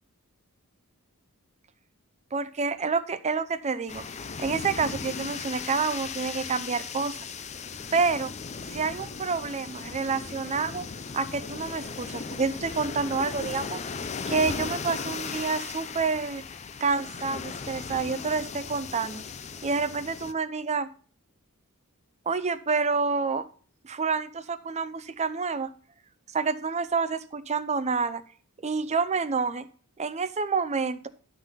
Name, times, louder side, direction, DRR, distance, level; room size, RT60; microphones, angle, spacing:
voice 1, 2.3-4.0 4.4-7.2 7.9-8.3 8.7-10.9 11.1-13.8 14.3-16.4 16.8-19.2 19.6-20.9 22.3-23.5 23.8-25.7 26.3-28.2 28.6-29.7 30.0-31.1, right 4 dB, 30° right, 11 dB, 0.6 m, -28 dB
sound 1, 3.9-20.3, left 5 dB, 30° left, 0.5 m, -37 dB
12.0 x 4.1 x 5.6 m, 0.42 s
head